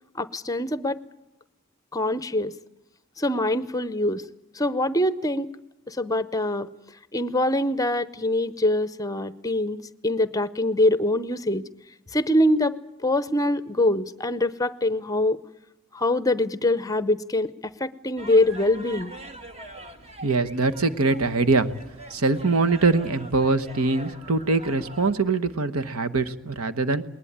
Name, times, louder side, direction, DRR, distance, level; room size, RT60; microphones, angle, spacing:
voice 1, 0.1-1.0 1.9-2.5 3.2-4.2 4.5-5.5 5.9-6.7 7.1-9.8 10.0-11.6 12.1-12.8 13.0-15.4 15.9-17.5 17.8-19.1, left 1 dB, 15° left, 15 dB, 0.7 m, -24 dB
sound 1, 18.2-25.3, right 1 dB, 30° right, 1.7 m, -43 dB
voice 2, 20.2-21.7 22.1-27.0, right 3 dB, 85° right, 13 dB, 1.2 m, -23 dB
20.5 x 19.5 x 8.8 m, 0.94 s
head